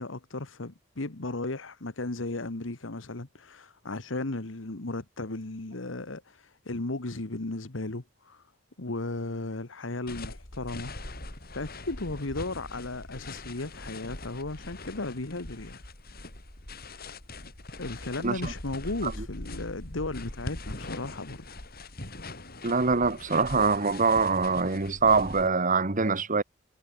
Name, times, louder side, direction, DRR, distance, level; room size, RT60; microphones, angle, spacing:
voice 1, 0.0-8.4 8.8-10.9 11.5-15.8 17.8-21.4, left 2 dB, 75° left, 1.5 m, -35 dB
sound 1, 10.1-25.5, left 2 dB, 50° left, 5.2 m, -42 dB
voice 2, 22.6-26.4, right 4 dB, 45° right, 1.4 m, -24 dB
head